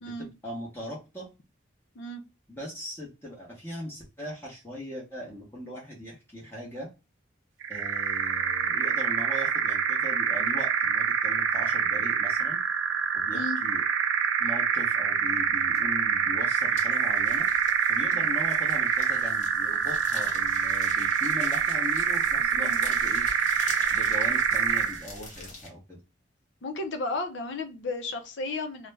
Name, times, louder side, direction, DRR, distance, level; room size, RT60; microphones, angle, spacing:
voice 1, 0.1-1.3 2.5-6.9 7.7-12.6 13.1-13.8 14.4-17.5 17.9-23.3 23.9-26.0, equal, 10° left, -4 dB, 0.8 m, -39 dB
sound 1, 7.6-25.0, right 7 dB, 85° right, 0.4 m, -26 dB
sound 2, 15.7-16.0 16.3-25.7, left 2 dB, 40° left, 1.0 m, -45 dB
voice 2, 26.6-28.9, left 2 dB, 75° left, 6 dB, 0.5 m, -34 dB
2.5 x 2.1 x 3.1 m, 0.27 s
head